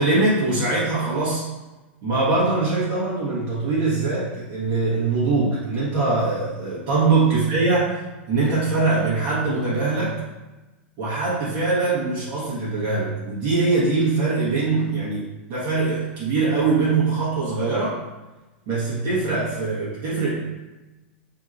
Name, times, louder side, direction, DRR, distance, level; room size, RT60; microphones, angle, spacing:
voice 1, 0.0-1.4 2.0-8.0 8.3-10.2 11.0-18.0 18.7-20.3, right 3 dB, 50° right, -9 dB, 1.2 m, -22 dB
3.5 x 2.8 x 2.5 m, 1.1 s
supercardioid pair, 130°, 6 cm